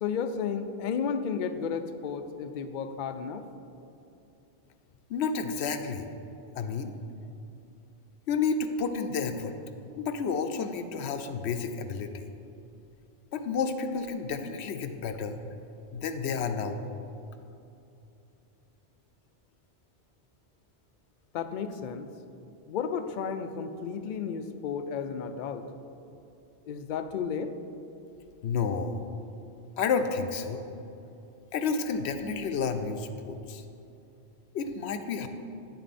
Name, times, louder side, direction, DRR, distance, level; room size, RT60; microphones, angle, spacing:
voice 1, 0.0-3.5 21.3-22.1 22.7-25.7 26.7-27.5, left 6 dB, 55° left, 9 dB, 0.6 m, -33 dB
voice 2, 5.1-6.1 6.6-6.9 8.3-9.5 10.0-12.3 13.3-15.4 15.9-16.8 28.4-29.0 29.8-30.6 31.5-33.6 34.5-35.3, left 5 dB, 80° left, 8 dB, 0.9 m, -30 dB
9.5 x 7.8 x 4.2 m, 2.8 s
omnidirectional pair, 1.1 m